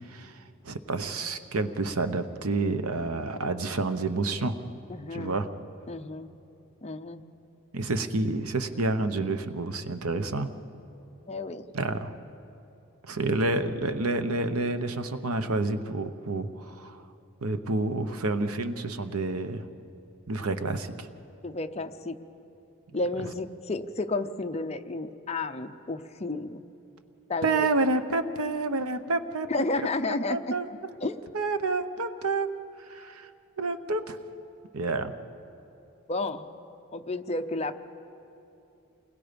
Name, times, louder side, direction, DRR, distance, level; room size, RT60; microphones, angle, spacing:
voice 1, 0.1-4.6 5.1-5.5 7.7-10.5 11.7-12.1 13.0-17.0 17.4-19.7 20.3-21.1 27.4-29.5 29.8-29.9 30.3-30.7 31.3-32.5 32.8-33.3 33.6-34.2 34.7-35.1, right 2 dB, 90° right, 9 dB, 1.0 m, -29 dB
voice 2, 4.9-5.3 5.9-6.4 6.8-7.3 11.3-11.7 21.4-22.1 22.9-26.6 27.3-27.7 29.5-30.6 31.0-31.2 36.1-36.4 36.9-37.7, left 2 dB, 30° left, 8 dB, 0.7 m, -31 dB
28.5 x 21.0 x 5.3 m, 2.8 s
head